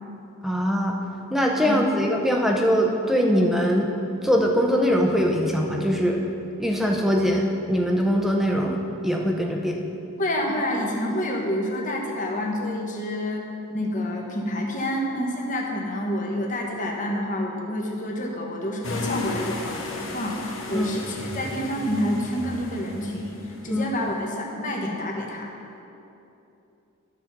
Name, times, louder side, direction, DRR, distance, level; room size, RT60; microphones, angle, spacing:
voice 1, 0.4-1.0 1.3-3.9 4.2-6.2 6.6-9.8 20.7-20.9 23.7-23.9, equal, ahead, 0 dB, 0.7 m, -22 dB
voice 2, 10.2-13.4 13.7-25.5, left 1 dB, 35° left, -1 dB, 1.2 m, -28 dB
sound 1, 18.8-24.3, left 2 dB, 60° left, 1.2 m, -34 dB
13.0 x 4.3 x 6.0 m, 2.8 s
head